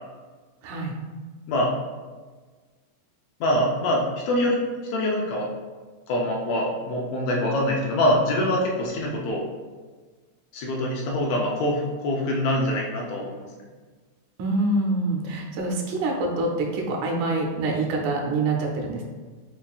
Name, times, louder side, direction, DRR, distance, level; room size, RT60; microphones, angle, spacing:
voice 1, 0.6-0.9 14.4-19.0, right 2 dB, 85° right, 0 dB, 2.1 m, -25 dB
voice 2, 3.4-4.6 4.9-5.5 6.1-9.5 10.5-13.5, left 1 dB, 75° left, -2 dB, 1.6 m, -24 dB
7.1 x 2.4 x 2.3 m, 1.4 s
omnidirectional pair, 3.3 m